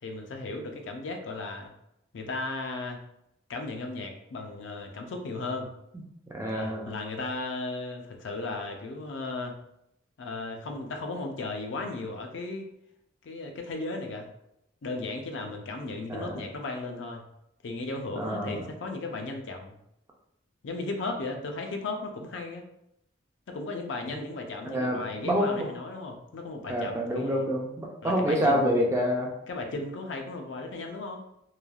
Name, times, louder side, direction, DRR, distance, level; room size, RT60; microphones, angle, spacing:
voice 1, 0.0-1.7 2.1-3.0 3.5-5.7 6.5-9.6 10.2-12.7 13.2-14.3 14.8-17.3 17.6-19.7 20.6-22.7 23.5-27.4 28.0-28.7 29.5-31.2, left 3 dB, 60° left, 3 dB, 0.4 m, -35 dB
voice 2, 6.3-6.9 16.1-16.4 18.2-18.6 24.6-25.6 26.7-29.3, equal, 15° right, 0 dB, 0.3 m, -27 dB
3.1 x 2.3 x 2.3 m, 0.81 s
head